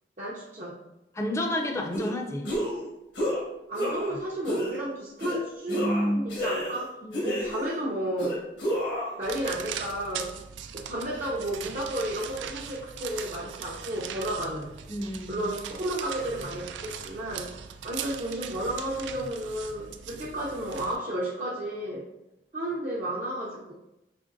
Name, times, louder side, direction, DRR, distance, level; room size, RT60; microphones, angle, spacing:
voice 1, 0.2-0.8 3.7-6.9 7.2-8.4 9.2-10.3 10.7-14.7 15.3-17.5 17.8-22.0 22.5-23.7, right 1 dB, 45° right, -5 dB, 0.5 m, -32 dB
voice 2, 1.1-2.5 5.7-6.3 7.0-7.4 14.9-15.5, equal, 15° left, 2 dB, 0.4 m, -30 dB
sound 1, 1.9-2.1 2.4-2.8 3.1-3.4 3.7-4.1 4.5-4.7 5.2-5.4 5.7-6.8 7.1-7.8 8.2-9.1, equal, 80° left, 1.4 m, -30 dB
sound 2, 9.2-21.0, right 8 dB, 90° right, 0.3 m, -40 dB
4.9 x 2.9 x 2.6 m, 0.93 s
head